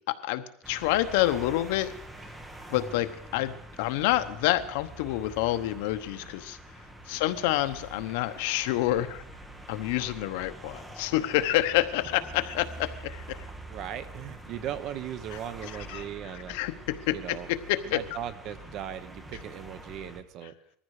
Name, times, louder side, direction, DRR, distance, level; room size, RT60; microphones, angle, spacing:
voice 1, 0.1-1.9 2.7-6.6 7.0-9.2 9.7-13.5 15.9-16.0 16.5-18.0, left 15 dB, 70° left, 11 dB, 1.0 m, -28 dB
sound 1, 0.6-20.2, right 1 dB, 10° right, 1.2 m, -45 dB
voice 2, 13.7-16.6 17.1-17.5 17.8-20.5, right 10 dB, 40° right, 13 dB, 1.0 m, -38 dB
20.0 x 14.5 x 4.9 m, 0.66 s
cardioid pair, 175°, 0 cm